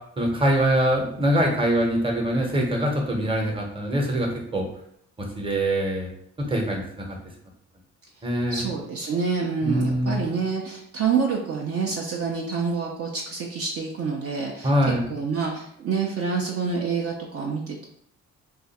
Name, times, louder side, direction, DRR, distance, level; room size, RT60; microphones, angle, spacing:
voice 1, 0.2-4.7 5.4-6.1 6.4-7.2 8.2-8.7 9.6-10.2 14.6-15.0, equal, 15° right, 0 dB, 0.9 m, -23 dB
voice 2, 8.5-17.9, right 5 dB, 50° right, -1 dB, 0.6 m, -27 dB
2.4 x 2.4 x 4.0 m, 0.68 s
cardioid pair, 90°, 30 cm